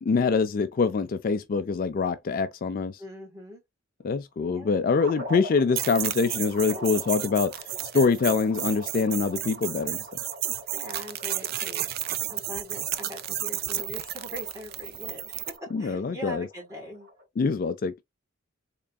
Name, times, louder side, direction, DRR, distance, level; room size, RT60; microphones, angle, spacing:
voice 1, 0.0-3.0 4.0-7.5 7.9-10.0 15.7-16.5 17.4-18.0, left 5 dB, 45° left, 0.3 m, -25 dB
voice 2, 3.0-3.6 4.5-4.8 6.7-7.3 10.7-15.4 15.8-17.1, left 1 dB, 15° right, 2.1 m, -42 dB
sound 1, 5.0-17.2, equal, 90° right, 1.8 m, -44 dB
sound 2, 5.8-15.6, right 13 dB, 50° right, 0.3 m, -32 dB
3.7 x 3.4 x 2.3 m
head